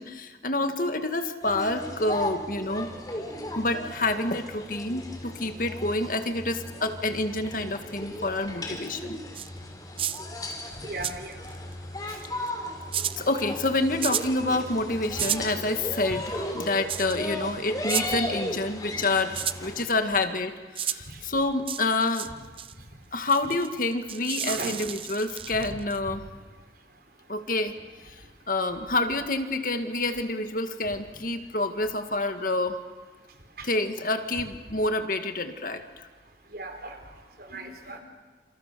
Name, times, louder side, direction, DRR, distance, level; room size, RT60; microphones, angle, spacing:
voice 1, 0.0-2.9 3.6-9.2 13.2-22.3 23.1-26.2 27.3-27.7 28.0-28.2 28.5-32.8 33.6-36.1, left 2 dB, 50° left, 7 dB, 1.9 m, -28 dB
sound 1, 1.4-19.9, left 1 dB, 20° left, 4.5 m, -36 dB
sound 2, 9.3-9.5 10.0-10.2 11.0-11.6 12.2-12.5 12.9-13.2 14.0-14.3 15.2-15.5 16.9-17.2 17.8-18.1 19.3-19.6 20.7-21.0 21.7-22.3 22.6-22.7 23.3-26.0, right 10 dB, 30° right, 0.7 m, -31 dB
voice 2, 10.8-11.3 12.1-12.2 21.1-21.2 24.5-24.8 25.6-25.8 33.6-33.7 36.5-37.0 37.4-38.0, right 2 dB, 55° right, 5 dB, 4.6 m, -37 dB
29.0 x 28.5 x 6.9 m, 1.4 s
head